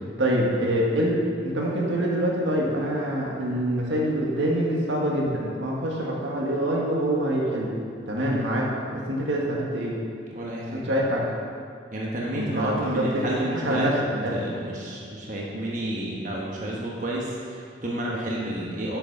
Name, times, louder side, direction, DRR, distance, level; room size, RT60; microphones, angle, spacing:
voice 1, 0.2-1.2 1.4-7.7 8.1-10.0 10.9-11.2 12.3-13.2 13.6-14.3, right 1 dB, 80° right, -2 dB, 1.6 m, -25 dB
voice 2, 10.3-10.9 11.9-13.9 14.3-19.0, right 1 dB, 45° right, -4 dB, 1.1 m, -30 dB
8.7 x 6.0 x 6.0 m, 2.3 s
head